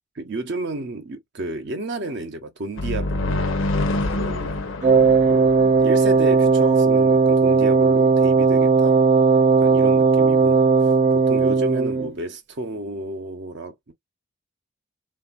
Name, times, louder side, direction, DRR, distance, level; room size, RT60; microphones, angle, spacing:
voice 1, 0.1-3.5 4.1-4.6 5.2-5.5 5.8-9.0 9.6-10.7 11.1-13.9, right 2 dB, 55° right, 0.7 m, -32 dB
sound 1, 2.8-6.5, left 2 dB, 65° left, 0.7 m, -26 dB
Wind instrument woodwind instrument, 4.8-12.1, right 4 dB, 35° right, 0.3 m, -17 dB
3.3 x 2.4 x 2.4 m
head